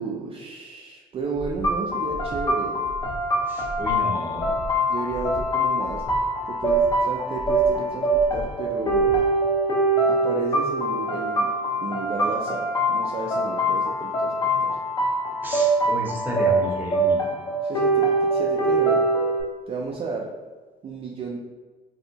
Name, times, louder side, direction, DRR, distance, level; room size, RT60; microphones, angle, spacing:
voice 1, 0.0-2.8 4.9-6.0 6.5-9.1 10.1-11.5 11.8-14.3 14.6-14.8 17.6-19.0 19.7-20.3 20.8-21.4, right 4 dB, 35° right, -1 dB, 0.4 m, -32 dB
Breathing, 1.3-1.7 2.1-2.4 2.8-3.2 3.6-3.9 4.3-4.7 5.1-5.4 5.8-6.2 6.6-6.9 7.3-7.7 8.1-8.4 8.8-9.2, right 1 dB, 55° left, 1.0 m, -37 dB
sound 1, 1.6-19.4, right 1 dB, 20° left, 0.6 m, -23 dB
voice 2, 3.5-4.6 15.4-17.2, equal, 10° right, -2 dB, 0.8 m, -32 dB
3.3 x 2.7 x 2.7 m, 1.3 s
cardioid pair, 110°, 17 cm